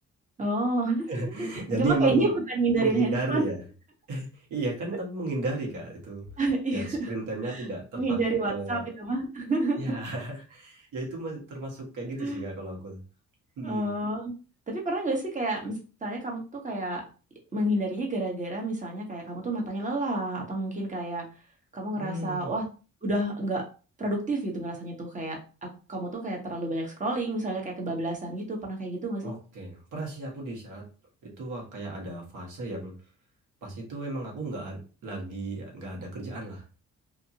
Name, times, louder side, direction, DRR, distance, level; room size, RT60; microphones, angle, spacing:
voice 1, 0.4-1.1 1.4-1.5 1.8-3.4 6.4-7.1 7.4-7.6 7.9-10.0 12.2-12.4 13.6-14.3 14.7-15.7 16.0-17.0 17.5-21.2 21.7-22.6 23.0-23.6 24.0-29.3, right 2 dB, 25° right, 0 dB, 1.1 m, -29 dB
voice 2, 1.1-2.4 2.7-3.6 4.1-6.3 6.7-8.2 8.5-8.8 9.7-13.0 13.6-13.9 21.9-22.5 29.2-30.9 31.2-32.9 33.6-36.6, right 2 dB, 80° right, -1 dB, 1.3 m, -33 dB
2.7 x 2.4 x 2.8 m, 0.35 s
cardioid pair, 90°, 30 cm